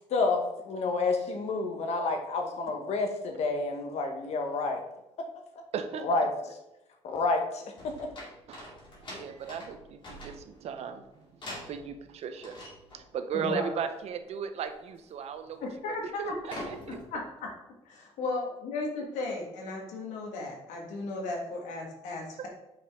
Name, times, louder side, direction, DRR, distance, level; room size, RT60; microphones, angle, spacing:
voice 1, 0.1-4.8 6.0-6.3 7.0-8.1, left 3 dB, 60° left, 4 dB, 1.1 m, -29 dB
voice 2, 5.7-6.1 8.5-8.7 9.0-12.6 12.9-17.0, right 7 dB, 60° right, 9 dB, 0.7 m, -37 dB
sound 1, 7.8-10.7 11.4-12.0 12.4-13.1 13.4-13.7 14.0-14.2 14.6-15.0 15.3-15.8 16.1-17.2, left 1 dB, 45° left, 2.3 m, -45 dB
voice 3, 13.3-13.7 15.6-16.4 16.9-17.2 18.2-22.5, left 2 dB, 85° left, 0 dB, 1.7 m, -35 dB
5.5 x 5.2 x 3.6 m, 0.93 s
cardioid pair, 100°, 12 cm